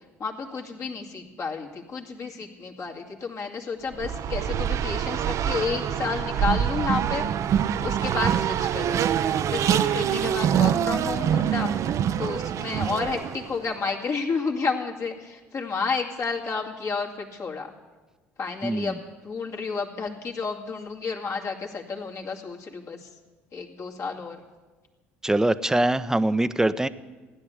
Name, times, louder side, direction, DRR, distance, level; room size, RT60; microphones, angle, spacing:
voice 1, 0.2-7.3 7.8-11.7 12.2-17.7 18.4-23.1 23.5-24.4, left 4 dB, 50° left, -1 dB, 2.4 m, -31 dB
Race car auto racing, 3.9-13.6, right 9 dB, 55° right, 0.7 m, -25 dB
voice 2, 18.6-19.0 25.2-26.9, right 1 dB, 10° right, 14 dB, 0.8 m, -23 dB
16.0 x 10.0 x 8.1 m, 1.3 s
hypercardioid pair, 60°, 6 cm